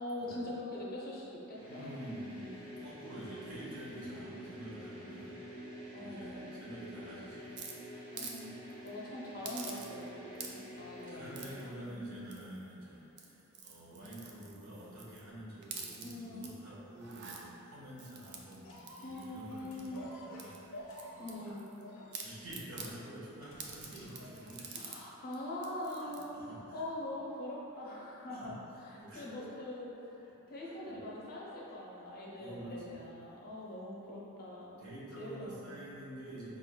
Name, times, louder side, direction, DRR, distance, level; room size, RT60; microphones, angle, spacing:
voice 1, 0.0-2.0 4.1-4.3 5.9-6.5 8.1-8.5 8.8-11.9 16.0-16.5 19.0-20.1 21.2-21.7 24.7-26.3 26.7-28.5 28.8-34.8 35.2-35.6, left 1 dB, 45° left, -4 dB, 0.7 m, -43 dB
sound 1, 1.5-11.8, equal, 25° right, 1.0 m, -48 dB
voice 2, 1.7-5.3 5.9-8.0 11.1-21.5 22.2-24.9 26.0-26.8 28.3-28.6 29.0-29.3 30.6-31.0 32.3-33.3 34.8-36.6, right 1 dB, 70° right, -8 dB, 1.2 m, -48 dB
sound 2, 7.6-8.4 8.7-8.9 9.4-10.1 10.3-10.8 11.3-11.7 12.3-12.7 13.1-15.2 15.6-16.5 16.9-17.4 18.0-20.0 20.4-21.8 22.1-22.9 23.6-25.0 25.3-25.4 25.6-26.2, right 5 dB, 55° right, 0.4 m, -47 dB
sound 3, 18.6-25.1 25.9-26.0, equal, 80° left, 0.9 m, -51 dB
4.9 x 3.7 x 2.3 m, 3.0 s
head